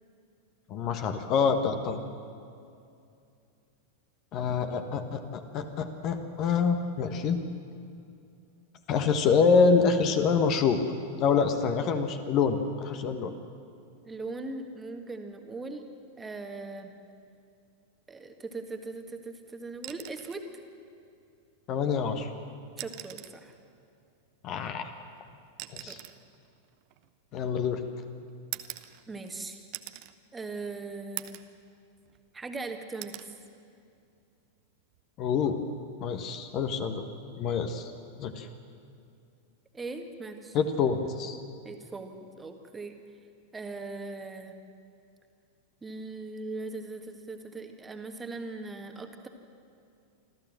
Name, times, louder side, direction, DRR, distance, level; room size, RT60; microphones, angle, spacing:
voice 1, 0.7-2.0 4.3-7.4 8.9-10.8 11.2-13.3 21.7-22.3 24.4-24.9 25.7-26.0 27.3-27.8 35.2-35.6 36.0-37.0 37.4-37.9 38.2-38.5 40.5-41.4, left 5 dB, 35° left, 7 dB, 1.4 m, -26 dB
voice 2, 14.0-15.8 16.2-16.9 18.1-20.4 22.8-23.5 25.9-26.0 29.1-29.6 30.3-31.4 32.3-33.3 39.7-40.6 41.6-42.9 43.5-44.6 45.8-49.3, right 3 dB, 15° right, 5 dB, 1.7 m, -39 dB
sound 1, 19.7-20.5 21.9-22.0 22.7-23.5 24.6-27.7 28.5-29.4 29.7-30.1 30.6-30.7 31.2-31.6 32.0-32.6 33.0-33.3 34.8-35.0, right 17 dB, 45° right, 0.9 m, -43 dB
26.0 x 14.0 x 7.6 m, 2.5 s
figure-of-eight pair, 90°, 0 cm